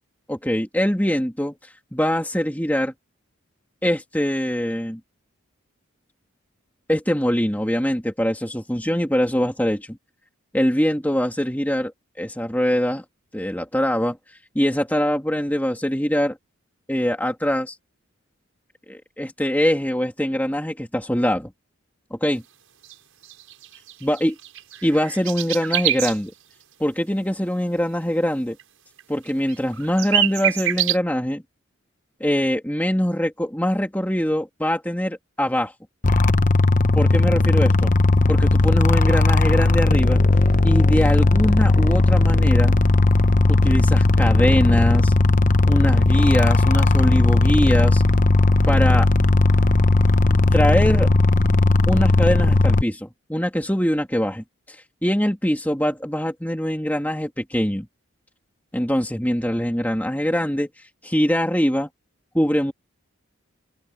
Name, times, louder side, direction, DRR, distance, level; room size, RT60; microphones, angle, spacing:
voice 1, 0.3-2.9 3.8-5.0 6.9-10.0 10.5-11.9 12.2-13.0 13.3-16.4 16.9-17.8 18.9-21.5 22.1-22.4 24.0-24.3 24.8-26.3 26.8-28.6 29.1-31.4 32.2-35.7 36.9-37.9 38.3-40.2 40.6-42.8 43.5-45.1 45.6-48.0 48.7-49.1 50.3-51.1 51.9-57.9 58.7-61.9 62.3-62.7, equal, 10° left, 2.7 m, -23 dB
sound 1, 22.8-22.9 23.2-26.2 28.6-28.7 29.0-29.1 29.3-31.0, right 11 dB, 70° right, 7.0 m, -25 dB
sound 2, 36.0-52.8, left 2 dB, 35° left, 0.9 m, -17 dB
open air
head